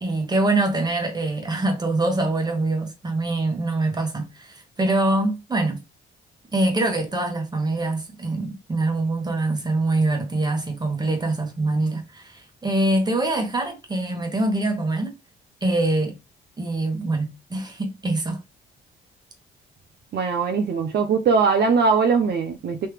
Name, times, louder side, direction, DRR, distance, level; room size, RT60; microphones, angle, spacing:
voice 1, 0.0-5.8 6.5-15.1 15.6-16.1 16.6-18.4, right 2 dB, 20° right, 1.3 m, -24 dB
voice 2, 20.1-22.9, right 5 dB, 55° right, 0.7 m, -20 dB
3.2 x 2.8 x 3.4 m
cardioid pair, 90°, 20 cm